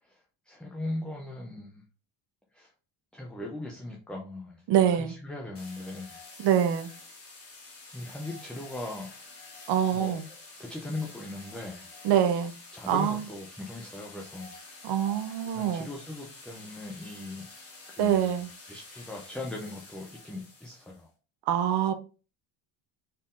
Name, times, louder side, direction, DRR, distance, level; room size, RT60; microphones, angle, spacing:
voice 1, 0.0-1.8 2.5-2.7 3.1-6.2 7.9-9.1 9.9-11.9 12.7-14.5 15.5-17.5 17.9-21.1, left 2 dB, ahead, 0.4 m, -39 dB
voice 2, 4.7-5.1 6.4-6.9 9.7-10.2 12.0-12.5 12.9-13.2 14.8-15.9 18.0-18.5 21.5-21.9, right 9 dB, 60° right, 0.7 m, -25 dB
sound 1, 5.5-21.0, left 3 dB, 30° left, 1.2 m, -49 dB
4.3 x 3.6 x 2.4 m
cardioid pair, 145°, 46 cm